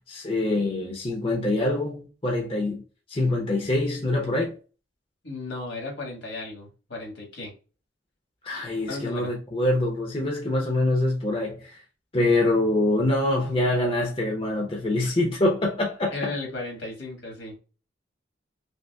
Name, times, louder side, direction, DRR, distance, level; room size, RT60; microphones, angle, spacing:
voice 1, 0.1-2.8 3.1-4.5 8.4-11.8 12.1-16.3, left 2 dB, 30° left, 0.7 m, -25 dB
voice 2, 5.2-7.5 8.9-9.3 16.1-17.5, left 2 dB, 70° left, 1.5 m, -35 dB
5.2 x 2.1 x 2.2 m
head